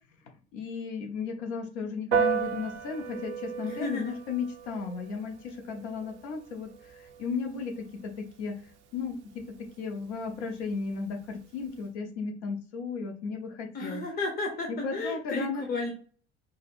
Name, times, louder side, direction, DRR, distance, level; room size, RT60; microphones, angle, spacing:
voice 1, 0.5-8.6 8.9-14.0 14.7-15.6, left 5 dB, 70° left, 3 dB, 1.0 m, -35 dB
Piano, 2.1-11.9, right 6 dB, 75° right, 0.6 m, -36 dB
voice 2, 3.6-4.1 13.7-15.9, left 3 dB, 25° left, 1 dB, 0.9 m, -33 dB
5.0 x 2.2 x 2.5 m, 0.42 s
hypercardioid pair, 65°, 35 cm